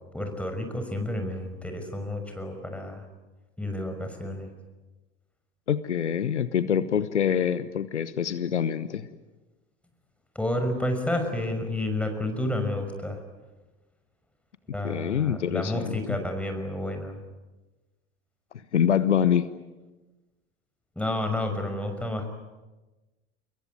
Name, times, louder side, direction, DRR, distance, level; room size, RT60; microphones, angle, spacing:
voice 1, 0.1-3.0 3.6-4.5 10.3-13.2 14.7-17.2 21.0-22.3, left 1 dB, 5° left, 5 dB, 6.0 m, -30 dB
voice 2, 5.7-9.1 14.8-16.2 18.7-19.5, left 8 dB, 80° left, 15 dB, 1.1 m, -25 dB
26.0 x 22.0 x 9.5 m, 1.1 s
figure-of-eight pair, 75°, 34 cm